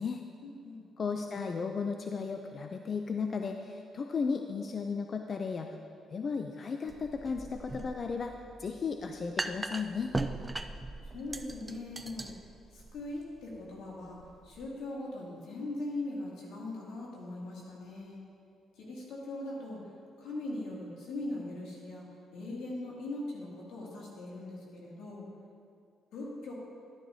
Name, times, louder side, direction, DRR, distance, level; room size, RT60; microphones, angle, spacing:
voice 1, 0.4-0.8 11.0-12.3 12.7-14.2 14.4-18.2 18.8-19.8 20.2-22.0 22.3-25.3 26.1-26.5, left 2 dB, 85° left, -4 dB, 2.3 m, -40 dB
voice 2, 1.0-5.8 6.1-8.3 8.6-10.1, left 5 dB, 45° left, 5 dB, 0.5 m, -35 dB
sound 1, 6.9-14.7, right 2 dB, 20° right, 0.4 m, -40 dB
11.5 x 10.0 x 2.7 m, 2.4 s
cardioid pair, 90°, 0 cm